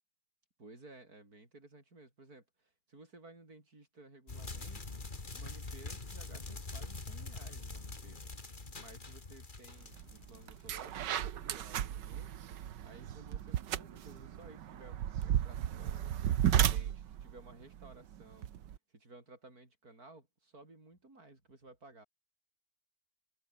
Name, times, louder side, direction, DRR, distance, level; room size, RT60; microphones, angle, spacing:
voice 1, 0.6-5.0 5.3-8.3 8.7-12.4 12.8-16.1 16.5-18.5 18.9-22.1, right 2 dB, 55° right, 6.8 m, -56 dB
sound 1, 4.3-11.1, left 3 dB, 30° left, 2.3 m, -44 dB
sound 2, 10.0-10.1 10.5-18.8, right 10 dB, 85° right, 1.7 m, -34 dB
omnidirectional pair, 1.8 m